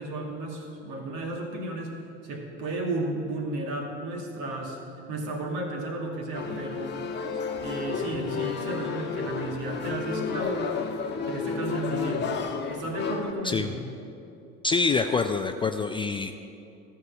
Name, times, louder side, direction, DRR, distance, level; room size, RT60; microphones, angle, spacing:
voice 1, 0.0-4.8 5.1-7.0 7.6-10.8 11.3-12.4 12.7-13.8, right 2 dB, 60° right, 0 dB, 2.2 m, -33 dB
sound 1, 6.3-13.3, left 5 dB, 30° left, 1.2 m, -31 dB
voice 2, 14.6-16.4, left 4 dB, 15° left, 7 dB, 0.3 m, -26 dB
13.0 x 4.8 x 8.2 m, 2.7 s
hypercardioid pair, 75°, 34 cm